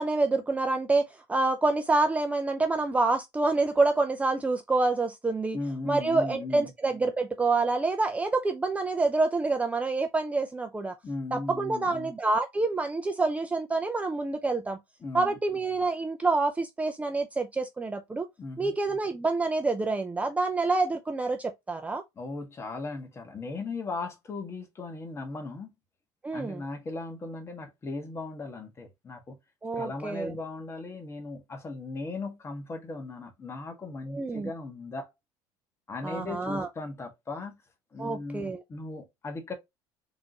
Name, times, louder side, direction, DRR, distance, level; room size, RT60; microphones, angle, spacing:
voice 1, 0.0-5.6 5.9-10.9 11.3-14.8 15.1-18.3 18.6-22.0 26.2-26.6 29.6-30.3 34.1-34.5 36.0-36.7 38.0-38.6, right 3 dB, 15° right, 0.5 m, -27 dB
voice 2, 5.5-6.7 11.0-12.1 15.0-15.4 18.4-18.8 22.2-25.7 26.3-29.4 29.7-35.1 35.9-37.6 37.9-39.5, left 3 dB, 25° left, 1.5 m, -37 dB
3.9 x 3.6 x 2.9 m
supercardioid pair, 110°, 10 cm